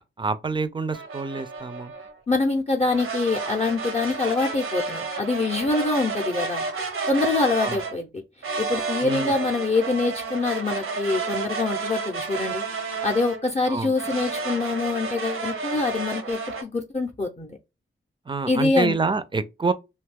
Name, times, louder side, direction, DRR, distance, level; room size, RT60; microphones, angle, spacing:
voice 1, 0.2-1.9 7.6-7.8 9.0-9.3 13.7-13.9 18.3-19.7, right 4 dB, 25° right, 0.4 m, -27 dB
sound 1, 0.9-2.1 2.9-8.0 8.4-13.5 14.0-16.6, right 4 dB, 85° right, 0.7 m, -31 dB
voice 2, 2.3-6.6 7.1-8.1 8.6-12.6 13.0-17.6 18.5-18.9, left 3 dB, 30° left, 0.5 m, -25 dB
2.6 x 2.3 x 3.3 m
wide cardioid pair, 70°, 21 cm